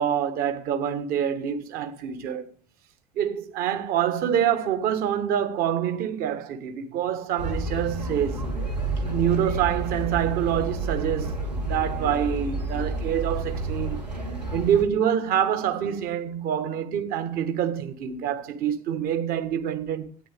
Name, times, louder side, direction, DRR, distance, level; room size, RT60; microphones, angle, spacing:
voice 1, 0.0-2.5 3.2-8.5 9.0-14.0 14.5-20.1, right 9 dB, 45° right, 1.7 m, -26 dB
sound 1, 7.4-14.8, right 2 dB, 85° right, 2.3 m, -30 dB
13.0 x 9.8 x 3.6 m
figure-of-eight pair, 65°, 21 cm